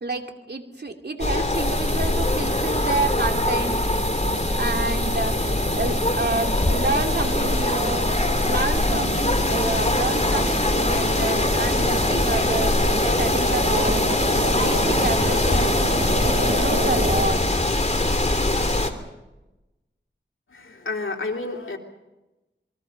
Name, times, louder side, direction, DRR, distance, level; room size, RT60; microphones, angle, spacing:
voice 1, 0.0-3.7 4.6-8.1 8.4-14.1 14.6-15.7 16.2-17.6, right 3 dB, 55° right, 4 dB, 2.8 m, -29 dB
sound 1, 1.2-18.9, left 2 dB, 35° left, 2.8 m, -22 dB
sound 2, 1.5-17.3, right 2 dB, 85° right, 7.6 m, -30 dB
voice 2, 20.5-21.8, left 3 dB, 85° left, 2 dB, 3.1 m, -30 dB
27.5 x 23.0 x 5.4 m, 1.0 s
wide cardioid pair, 55°, 20 cm